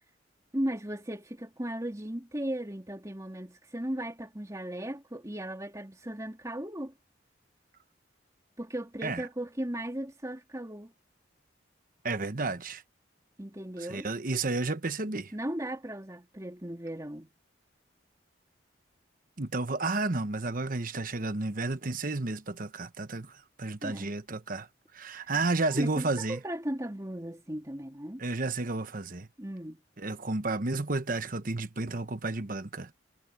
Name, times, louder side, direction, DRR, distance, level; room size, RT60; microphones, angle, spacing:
voice 1, 0.5-6.9 8.6-10.9 13.4-14.1 15.3-17.3 23.8-24.2 25.7-28.2 29.4-29.8, right 1 dB, 15° right, 3.2 m, -36 dB
voice 2, 12.0-12.8 13.8-15.3 19.4-24.7 24.9-26.4 28.2-29.3 30.0-32.9, right 3 dB, 45° right, 1.1 m, -32 dB
head